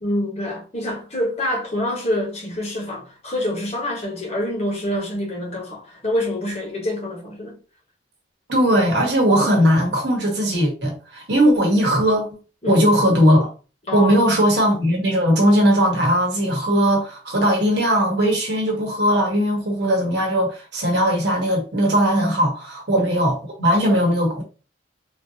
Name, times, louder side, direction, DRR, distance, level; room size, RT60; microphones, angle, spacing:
voice 1, 0.0-7.6 12.6-12.8 13.9-14.1 22.9-23.0, left 1 dB, 35° left, 1.2 m, -26 dB
voice 2, 8.5-12.4 12.7-13.5 13.9-24.4, equal, 60° right, 1.2 m, -19 dB
3.5 x 2.7 x 2.7 m
head